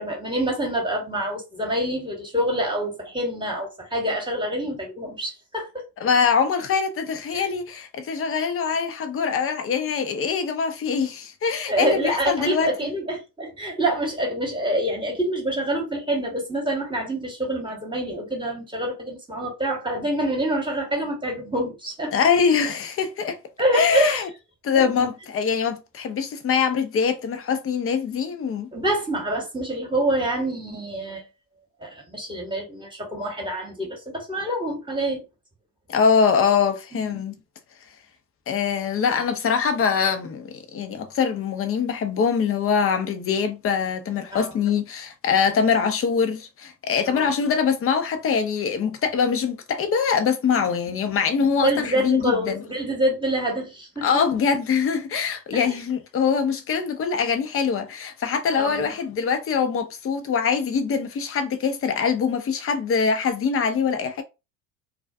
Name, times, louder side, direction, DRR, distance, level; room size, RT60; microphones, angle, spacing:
voice 1, 0.0-5.8 7.3-7.5 11.7-22.1 23.6-24.2 24.7-25.1 28.7-31.3 31.8-35.2 36.9-37.2 44.3-44.5 47.1-47.3 50.6-50.7 51.0-54.3 55.5-55.8 58.5-58.9, right 1 dB, 10° right, 1.2 m, -26 dB
voice 2, 6.0-12.7 22.1-23.4 23.7-24.3 24.6-28.7 35.9-37.3 38.5-52.6 54.0-64.2, left 6 dB, 30° left, 0.6 m, -23 dB
2.4 x 2.3 x 2.4 m
hypercardioid pair, 75°, 50 cm